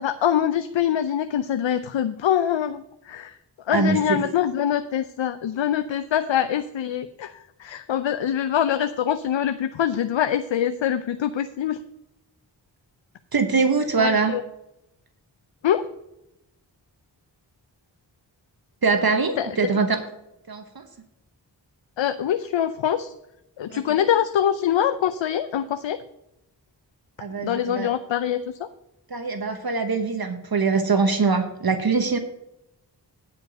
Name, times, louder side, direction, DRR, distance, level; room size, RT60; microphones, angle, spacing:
voice 1, 0.0-3.4 3.7-11.8 14.0-14.4 15.6-15.8 19.4-19.6 22.0-23.1 23.6-26.0 27.4-28.7, left 10 dB, 80° left, 11 dB, 0.6 m, -24 dB
voice 2, 3.7-4.2 13.3-14.4 18.8-20.1 20.5-20.8 23.7-24.0 27.2-27.9 29.1-32.2, right 4 dB, 55° right, 7 dB, 1.0 m, -23 dB
9.4 x 5.1 x 6.5 m, 0.87 s
cardioid pair, 45°, 44 cm